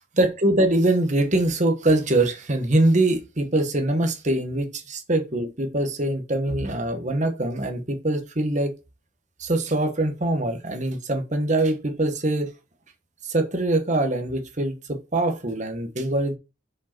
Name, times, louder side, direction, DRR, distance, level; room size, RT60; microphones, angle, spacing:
voice 1, 0.2-8.7 9.4-12.5 13.2-16.4, right 1 dB, 35° right, 1.4 m, -23 dB
6.7 x 5.1 x 4.6 m
head